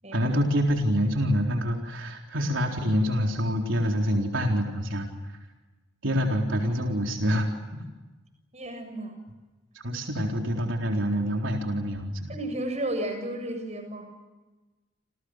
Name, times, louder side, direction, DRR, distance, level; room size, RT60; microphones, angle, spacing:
voice 1, 0.1-5.1 6.0-7.8 9.7-12.3, equal, 80° right, 1 dB, 4.0 m, -26 dB
voice 2, 8.5-9.1 12.3-14.0, right 1 dB, 35° right, 6 dB, 7.5 m, -33 dB
29.5 x 29.0 x 6.5 m, 1.2 s
head